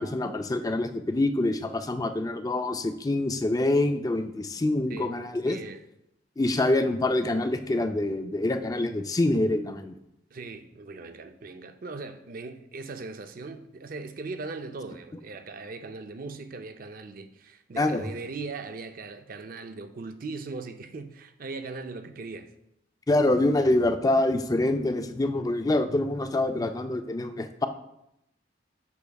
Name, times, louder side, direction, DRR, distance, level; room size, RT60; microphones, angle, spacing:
voice 1, 0.0-5.6 6.4-9.9 17.8-18.1 23.1-27.7, left 2 dB, 20° left, 0.4 m, -25 dB
voice 2, 5.4-5.8 10.3-22.5, right 3 dB, 50° right, 0.5 m, -39 dB
8.2 x 5.9 x 2.3 m
head